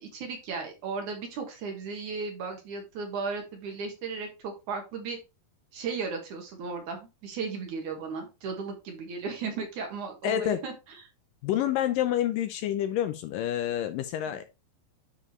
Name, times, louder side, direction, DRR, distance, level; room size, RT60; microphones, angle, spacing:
voice 1, 0.0-5.2 5.7-10.7 14.3-14.4, right 4 dB, 60° right, 3 dB, 2.7 m, -35 dB
voice 2, 10.2-10.6 11.4-14.4, left 11 dB, 80° left, 9 dB, 2.1 m, -28 dB
9.7 x 5.0 x 3.1 m, 0.26 s
omnidirectional pair, 4.3 m